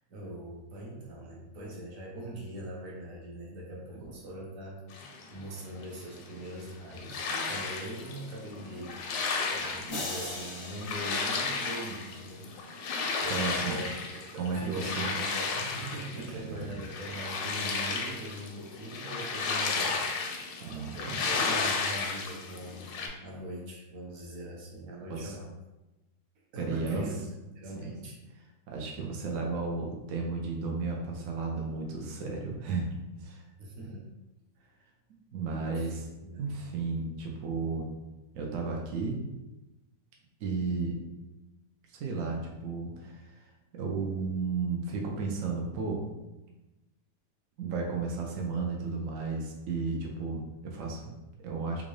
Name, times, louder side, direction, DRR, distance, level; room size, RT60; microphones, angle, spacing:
voice 1, 0.1-9.0 9.5-13.9 14.3-20.5 20.9-25.5 26.5-27.2 27.5-28.2 33.6-34.1 35.7-35.9 36.2-36.7, right 1 dB, 55° right, -2 dB, 1.1 m, -42 dB
sound 1, 4.9-23.1, left 4 dB, 85° left, 1.2 m, -34 dB
sound 2, 9.9-12.2, left 2 dB, 60° left, 0.7 m, -40 dB
voice 2, 13.3-13.8 14.4-15.2 16.2-16.8 20.6-21.4 25.1-25.3 26.6-27.1 27.8-27.9 28.7-33.4 35.3-36.1 36.4-37.9 38.3-39.2 40.4-41.0 41.9-46.0 47.6-51.8, right 4 dB, 75° right, 0 dB, 0.7 m, -34 dB
3.6 x 2.5 x 3.1 m, 1.0 s
omnidirectional pair, 1.9 m